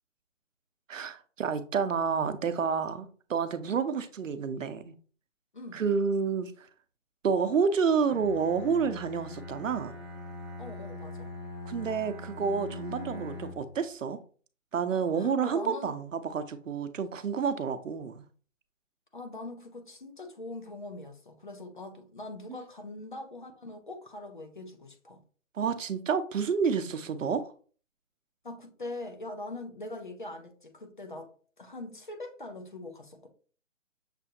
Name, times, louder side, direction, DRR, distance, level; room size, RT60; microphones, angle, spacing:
voice 1, 0.9-4.9 5.7-6.7 7.2-9.9 11.7-14.2 14.7-18.2 22.5-22.6 25.6-27.5, right 6 dB, 75° right, 0.7 m, -29 dB
Bowed string instrument, 8.1-13.7, left 2 dB, 20° right, 0.9 m, -42 dB
voice 2, 10.6-11.3 15.1-16.0 19.1-25.2 28.4-31.3 31.6-33.3, left 2 dB, 40° left, 0.6 m, -42 dB
6.7 x 2.5 x 2.7 m
hypercardioid pair, 175°, 39 cm